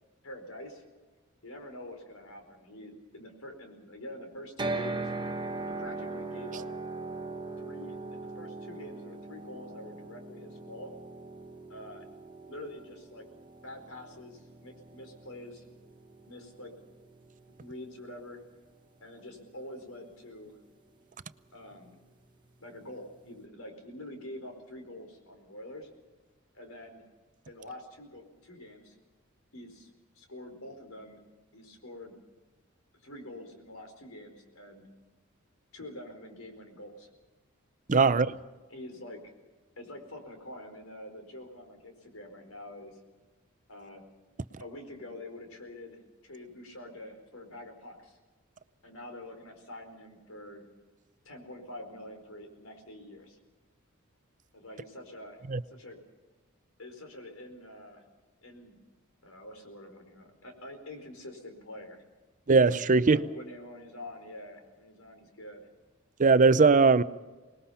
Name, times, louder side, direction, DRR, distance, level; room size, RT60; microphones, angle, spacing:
voice 1, 0.2-0.8 1.4-5.1 5.7-6.7 7.6-10.9 11.7-12.1 12.5-13.3 13.6-15.6 16.2-16.7 17.6-18.4 19.0-20.6 21.5-22.0 22.6-25.9 26.5-27.0 27.5-28.9 29.5-29.9 30.1-31.2 31.5-32.2 33.0-34.9 35.7-37.1 38.0-38.3 38.7-39.3 39.8-43.0 43.7-44.1 44.6-48.2 48.8-50.7 51.2-53.4 54.5-56.0 56.8-58.0 58.4-58.8 59.2-62.0 63.1-65.7, left 1 dB, 90° left, 4.6 m, -46 dB
sound 1, 4.6-18.7, right 3 dB, 20° right, 1.2 m, -40 dB
voice 2, 37.9-38.3 55.5-55.6 62.5-63.2 66.2-67.0, right 4 dB, 40° right, 0.6 m, -20 dB
25.5 x 20.0 x 5.7 m
head